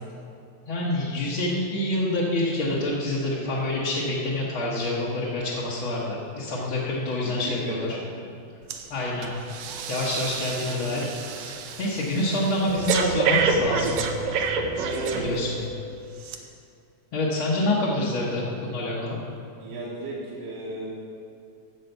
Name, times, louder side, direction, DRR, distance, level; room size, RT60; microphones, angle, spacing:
voice 1, 0.7-8.0 8.9-9.3 9.9-11.1 11.3-14.0 15.2-15.6 17.1-19.2, left 1 dB, 55° left, -7 dB, 1.7 m, -27 dB
voice 2, 7.2-8.2 14.7-15.3 19.6-20.9, right 2 dB, 60° right, -7 dB, 2.3 m, -34 dB
Breathing, 8.7-8.9 9.2-15.7 16.2-16.4, right 5 dB, 75° right, 2.0 m, -28 dB
13.0 x 4.9 x 8.0 m, 2.5 s
omnidirectional pair, 3.3 m